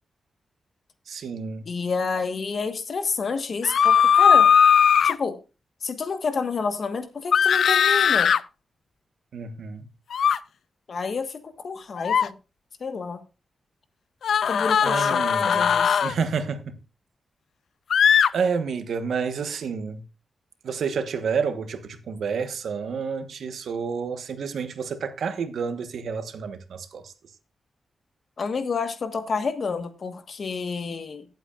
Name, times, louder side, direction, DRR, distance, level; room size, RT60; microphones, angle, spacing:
voice 1, 1.1-1.7 9.3-9.9 14.8-15.8 16.0-16.8 18.3-20.0 20.6-27.1, right 5 dB, 85° right, 1.2 m, -29 dB
voice 2, 1.6-4.5 5.0-5.4 5.8-8.3 10.9-12.3 12.8-13.2 14.5-16.0 28.4-31.3, left 5 dB, 55° left, 1.4 m, -29 dB
sound 1, 3.6-5.2 7.3-8.4 10.1-10.4 12.0-12.3 14.2-16.1 17.9-18.3, left 7 dB, 80° left, 0.4 m, -18 dB
17.0 x 8.1 x 2.4 m
wide cardioid pair, 125°, 0 cm